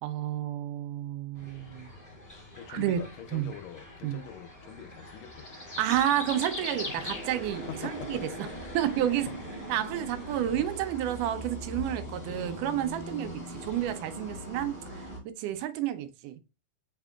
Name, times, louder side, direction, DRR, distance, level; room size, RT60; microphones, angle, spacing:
voice 1, 0.0-1.9 2.7-3.1 3.3-3.5 4.0-4.2 5.8-8.2 8.7-9.3 9.7-15.1 15.4-16.4, right 11 dB, 80° right, 2.1 m, -30 dB
sound 1, 1.3-15.2, left 1 dB, 10° left, 0.8 m, -41 dB
voice 2, 2.5-5.6 7.7-8.1, left 8 dB, 80° left, 1.6 m, -44 dB
sound 2, 6.9-13.9, left 3 dB, 40° right, 1.6 m, -50 dB
5.9 x 3.6 x 2.3 m
omnidirectional pair, 3.7 m